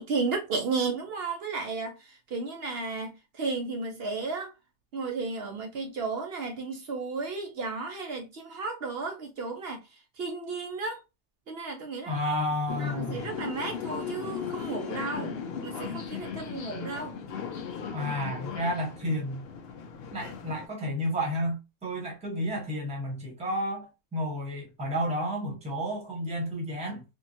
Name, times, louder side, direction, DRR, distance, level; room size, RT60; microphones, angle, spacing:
voice 1, 0.0-1.9 2.3-4.5 4.9-9.8 10.2-11.0 11.5-12.1 12.8-15.4 15.6-17.2, right 4 dB, 70° right, 0.5 m, -33 dB
voice 2, 12.0-13.2 17.9-19.5 20.1-27.0, equal, 5° right, 0.8 m, -31 dB
sound 1, 12.7-20.7, left 7 dB, 80° left, 0.5 m, -37 dB
3.6 x 2.2 x 2.6 m
omnidirectional pair, 1.7 m